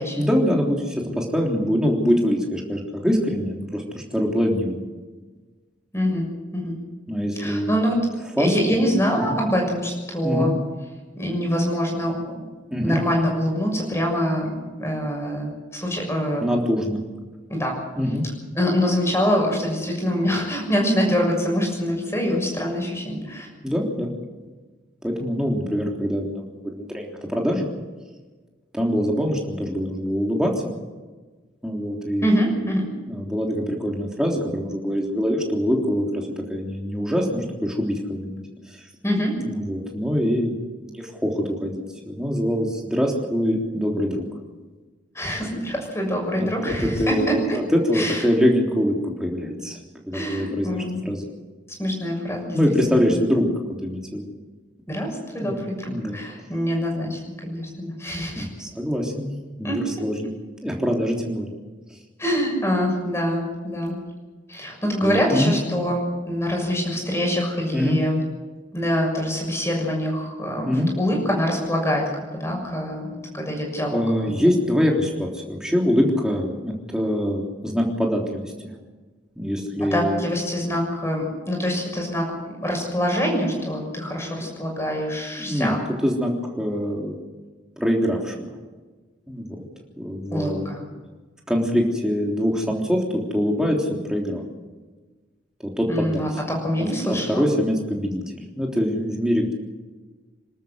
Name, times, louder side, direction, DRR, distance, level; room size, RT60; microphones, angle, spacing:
voice 1, 0.1-4.8 7.1-8.0 8.4-8.8 9.2-9.4 10.2-10.5 12.7-13.0 16.4-17.0 18.0-18.3 23.6-24.1 25.0-27.6 28.7-30.7 31.6-32.3 33.1-38.4 38.7-38.8 39.4-44.2 46.4-49.8 50.0-51.2 52.4-54.2 55.4-55.6 55.9-56.2 58.4-59.3 59.6-60.3 60.6-61.5 65.0-65.5 67.7-68.0 70.6-70.9 73.9-78.7 79.4-80.2 84.2-84.5 85.4-85.7 86.0-86.3 86.6-87.2 87.8-88.5 89.3-89.6 90.0-90.7 91.5-94.4 95.6-96.4 97.0-99.5, equal, 5° right, -1 dB, 3.4 m, -24 dB
voice 2, 5.9-6.8 7.3-8.0 8.4-10.6 11.1-12.3 12.8-16.4 17.5-17.8 18.5-23.5 32.2-32.9 39.0-39.4 45.1-47.6 47.9-48.2 50.1-51.0 51.8-53.0 54.9-58.5 59.6-59.8 62.2-64.0 64.5-68.2 68.7-74.0 79.8-82.3 82.6-85.8 90.3-90.8 95.9-97.4, equal, 15° left, 1 dB, 6.6 m, -25 dB
27.0 x 13.0 x 7.9 m, 1.3 s
head